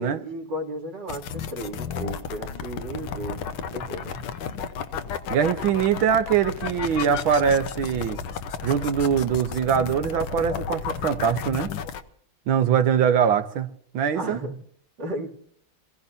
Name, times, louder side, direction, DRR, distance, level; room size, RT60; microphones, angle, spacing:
voice 1, 0.0-4.2 14.1-14.6 15.0-15.3, right 1 dB, 60° right, 3.4 m, -34 dB
sound 1, 1.1-12.0, left 6 dB, 80° left, 1.8 m, -33 dB
voice 2, 5.3-8.2 8.6-11.7 12.5-13.7 13.9-14.4, right 8 dB, 80° right, 1.8 m, -22 dB
26.5 x 16.0 x 2.7 m
omnidirectional pair, 2.2 m